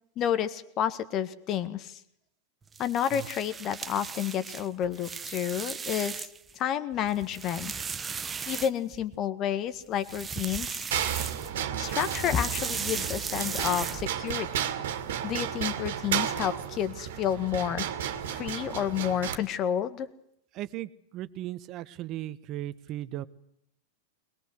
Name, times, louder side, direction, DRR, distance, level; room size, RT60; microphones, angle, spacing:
voice 1, 0.2-2.0 2.8-6.3 6.6-7.7 8.5-10.9 11.8-14.5 15.2-20.1, left 9 dB, 35° left, 13 dB, 1.7 m, -30 dB
sound 1, 2.7-6.5 6.9-9.2 9.9-11.6 11.8-14.4, right 6 dB, 20° right, 0.9 m, -37 dB
sound 2, 10.9-19.4, right 9 dB, 65° right, 2.3 m, -33 dB
voice 2, 20.6-23.3, right 14 dB, 40° right, 15 dB, 1.2 m, -37 dB
22.0 x 21.0 x 8.1 m, 0.72 s
figure-of-eight pair, 95°, 0 cm